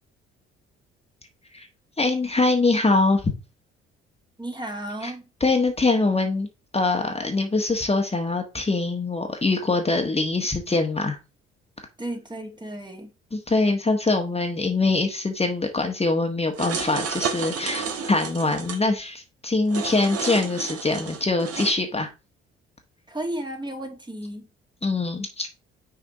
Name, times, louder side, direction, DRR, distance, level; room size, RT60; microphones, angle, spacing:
voice 1, 2.0-3.3 5.0-5.1 5.4-6.5 6.7-11.2 13.3-22.1 24.8-25.5, left 3 dB, 20° left, 1.4 m, -23 dB
voice 2, 4.4-5.3 12.0-13.1 23.1-24.5, right 1 dB, 15° right, 1.7 m, -33 dB
sound 1, 16.5-18.8 19.7-21.7, right 5 dB, 50° right, 1.4 m, -31 dB
6.4 x 4.2 x 4.1 m
hypercardioid pair, 45°, 30 cm